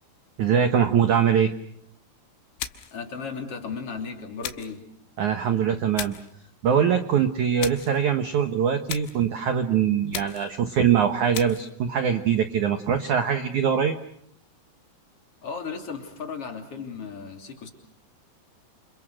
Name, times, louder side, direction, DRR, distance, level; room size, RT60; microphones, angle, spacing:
voice 1, 0.4-1.5 5.2-6.1 6.6-14.0, right 8 dB, 85° right, 8 dB, 1.7 m, -22 dB
sound 1, 2.6-3.0 4.4-4.8 6.0-6.3 7.6-8.0 8.9-9.3 10.1-10.6 11.3-11.7, left 12 dB, 75° left, 3.7 m, -36 dB
voice 2, 2.9-4.8 15.4-17.7, left 5 dB, 35° left, 4 dB, 3.5 m, -35 dB
30.0 x 28.5 x 6.5 m, 0.66 s
omnidirectional pair, 5.5 m